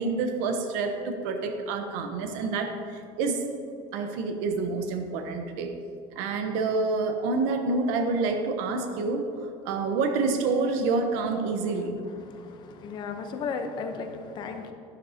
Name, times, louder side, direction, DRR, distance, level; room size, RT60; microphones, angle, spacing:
voice 1, 0.0-3.5 3.9-5.8 6.2-9.3 9.6-12.0, right 3 dB, 75° right, 5 dB, 1.0 m, -28 dB
voice 2, 12.2-14.7, left 5 dB, 40° left, 6 dB, 0.8 m, -35 dB
12.5 x 11.5 x 2.8 m, 2.6 s
cardioid pair, 165°, 12 cm